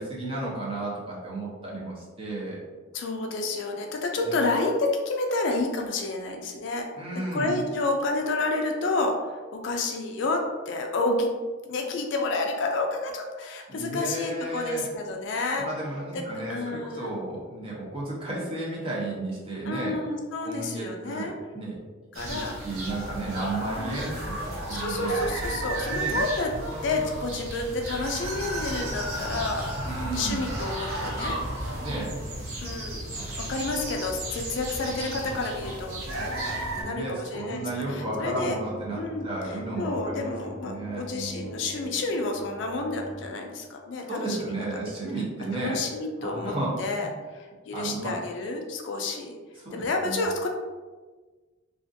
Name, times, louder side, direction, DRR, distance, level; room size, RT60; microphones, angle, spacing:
voice 1, 0.0-2.6 4.2-4.5 6.9-7.7 13.7-14.9 15.6-20.0 20.4-21.8 22.3-25.2 25.9-26.2 29.8-30.4 31.8-32.2 33.6-33.7 36.7-40.3 40.6-41.5 44.1-45.8 46.2-47.1 47.7-48.2 49.6-50.2, right 2 dB, 25° right, -5 dB, 0.6 m, -33 dB
voice 2, 2.9-6.9 7.3-11.3 11.6-15.7 16.1-16.2 16.5-17.1 19.6-21.3 22.1-22.5 23.8-24.1 24.7-26.5 26.8-29.7 30.2-31.4 32.6-33.0 33.4-38.6 39.0-44.6 45.5-47.1 47.3-49.3 49.7-50.5, left 2 dB, 60° left, 2 dB, 0.3 m, -30 dB
sound 1, 22.1-36.8, right 1 dB, 90° right, 0.7 m, -33 dB
sound 2, 36.0-43.3, equal, 15° left, 0.6 m, -44 dB
2.4 x 2.4 x 2.5 m, 1.3 s
head